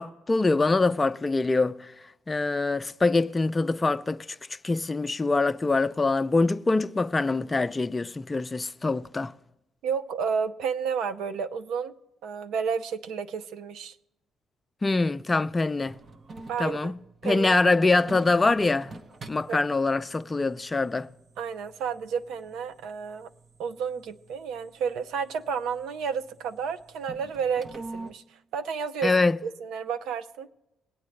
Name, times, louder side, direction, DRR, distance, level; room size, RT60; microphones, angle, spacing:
voice 1, 0.0-1.9 2.3-4.3 4.6-9.3 14.8-15.9 16.6-16.9 17.2-18.9 19.3-21.1 29.0-29.4, left 3 dB, 20° left, 0.5 m, -24 dB
voice 2, 9.8-11.9 12.2-14.0 16.5-16.9 17.2-17.6 19.5-19.6 21.4-23.3 23.6-29.1 29.4-30.5, right 6 dB, 85° right, 0.6 m, -31 dB
sound 1, 15.8-28.1, right 3 dB, 45° right, 0.9 m, -47 dB
20.5 x 8.7 x 3.2 m
cardioid pair, 90°, 0 cm